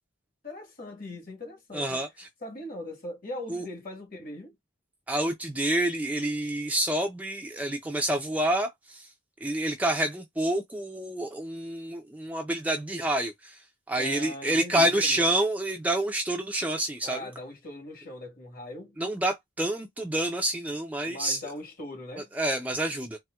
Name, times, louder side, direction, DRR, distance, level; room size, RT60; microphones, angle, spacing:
voice 1, 0.4-2.0 2.4-4.5 14.0-15.2 17.0-19.0 21.1-22.3, left 1 dB, 45° left, 1.3 m, -40 dB
voice 2, 1.7-2.3 3.5-3.6 5.1-9.1 9.4-13.6 13.9-17.2 19.0-21.4 22.3-23.2, right 1 dB, 5° right, 0.3 m, -28 dB
4.2 x 2.1 x 2.2 m
head